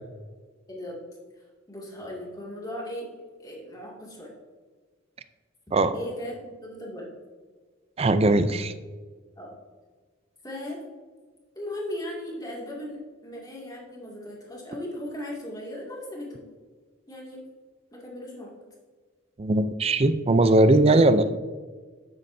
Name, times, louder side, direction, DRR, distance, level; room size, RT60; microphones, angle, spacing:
voice 1, 0.7-1.0 1.7-3.1 3.4-4.3 5.9-7.1 9.4-9.5 10.4-10.8 11.6-16.4 17.1-17.4 17.9-18.5 20.9-21.0, left 1 dB, 20° left, -3 dB, 2.2 m, -37 dB
voice 2, 8.0-8.7 19.4-21.2, right 2 dB, 30° right, 12 dB, 0.4 m, -19 dB
9.7 x 8.4 x 2.7 m, 1.5 s
head